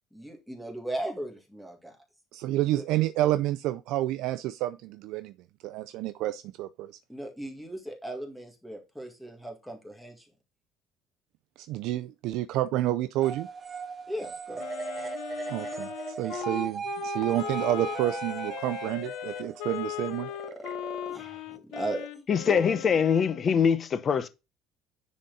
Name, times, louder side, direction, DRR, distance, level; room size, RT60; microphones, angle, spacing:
voice 1, 0.1-2.0 2.7-2.8 7.1-10.3 14.1-14.7 20.5-22.1 22.4-22.8, right 1 dB, ahead, 1.9 m, -37 dB
voice 2, 2.3-5.3 5.6-6.9 11.6-13.5 15.5-20.3, right 14 dB, 65° right, 0.5 m, -29 dB
sound 1, 13.2-20.7, right 4 dB, 20° right, 0.7 m, -37 dB
Wind instrument woodwind instrument, 14.6-23.5, left 14 dB, 75° left, 0.6 m, -38 dB
voice 3, 22.3-24.3, left 7 dB, 30° left, 0.8 m, -23 dB
10.0 x 4.2 x 3.9 m
cardioid pair, 175°, 0 cm